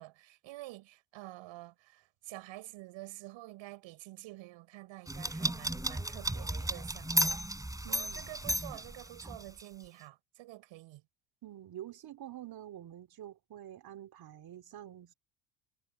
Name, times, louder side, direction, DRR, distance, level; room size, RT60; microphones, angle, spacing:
voice 1, 0.0-7.4 7.9-11.0, right 18 dB, 65° right, 6.3 m, -48 dB
sound 1, 5.1-9.6, equal, 5° right, 4.7 m, -34 dB
voice 2, 7.8-8.5 11.4-15.1, right 12 dB, 45° right, 3.2 m, -47 dB
supercardioid pair, 85°, 50 cm